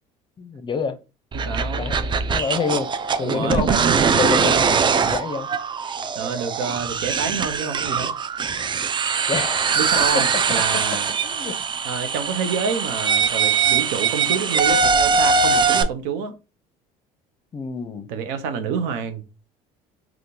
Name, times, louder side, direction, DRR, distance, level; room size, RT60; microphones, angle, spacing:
voice 1, 0.4-1.0 1.8-2.9 3.2-3.7 4.1-5.5 8.5-8.7 9.3-9.7 10.0-10.2 10.7-10.8 11.2-11.6 15.0-15.1 17.5-18.1, left 5 dB, 25° left, 0.5 m, -27 dB
sound 1, 1.3-15.8, right 5 dB, 25° right, 0.4 m, -22 dB
voice 2, 1.3-1.9 3.2-4.8 6.2-8.1 9.8-11.1 11.8-16.3 18.1-19.2, right 6 dB, 85° right, 0.7 m, -28 dB
3.6 x 2.4 x 2.7 m
supercardioid pair, 90°, 18 cm